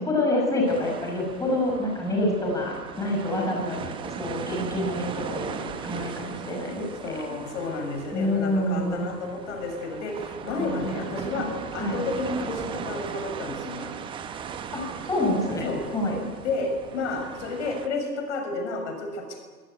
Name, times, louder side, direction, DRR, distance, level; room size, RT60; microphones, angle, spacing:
voice 1, 0.0-3.8 4.2-7.1 8.1-9.1 10.5-12.0 14.7-16.2, left 1 dB, 5° left, -1 dB, 5.7 m, -27 dB
sound 1, 0.7-17.9, right 7 dB, 10° right, 1.0 m, -38 dB
voice 2, 7.0-13.9 15.6-15.8 16.1-19.4, left 3 dB, 45° left, 4 dB, 6.5 m, -31 dB
25.0 x 17.0 x 9.4 m, 1.5 s
figure-of-eight pair, 115°, 49 cm